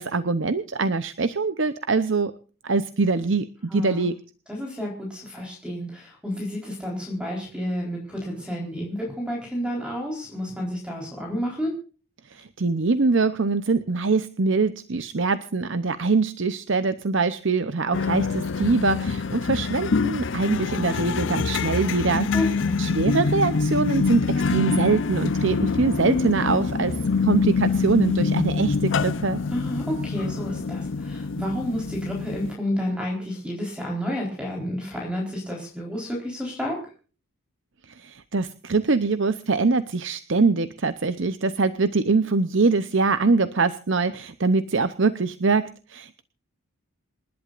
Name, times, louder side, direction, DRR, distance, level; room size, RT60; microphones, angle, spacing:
voice 1, 0.0-2.3 2.6-4.1 12.2-22.3 22.8-27.0 27.2-29.4 37.8-46.2, right 4 dB, 60° right, 12 dB, 0.7 m, -23 dB
voice 2, 3.7-4.1 4.5-11.7 22.3-22.8 29.5-36.8, left 1 dB, 5° right, -1 dB, 4.0 m, -30 dB
sound 1, 17.9-32.5, left 4 dB, 60° left, 0.6 m, -25 dB
27.5 x 11.5 x 2.5 m, 0.38 s
head